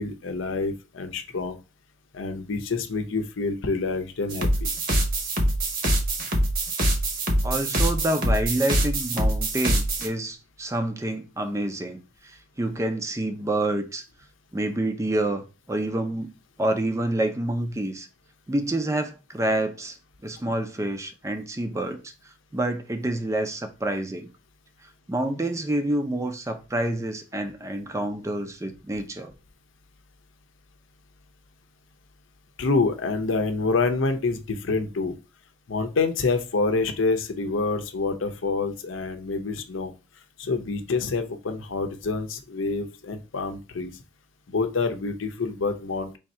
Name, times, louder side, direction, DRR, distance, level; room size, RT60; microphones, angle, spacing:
voice 1, 0.0-1.6 2.1-4.7 32.6-35.2 35.7-39.9 40.4-43.9 44.5-46.2, left 3 dB, 85° left, 0.6 m, -27 dB
sound 1, 4.3-10.1, right 1 dB, 45° right, 0.9 m, -24 dB
voice 2, 7.4-14.0 14.5-16.3 16.6-18.1 18.5-20.0 20.2-22.1 22.5-24.3 25.1-29.3, right 1 dB, 15° right, 0.4 m, -28 dB
3.4 x 2.7 x 4.2 m
head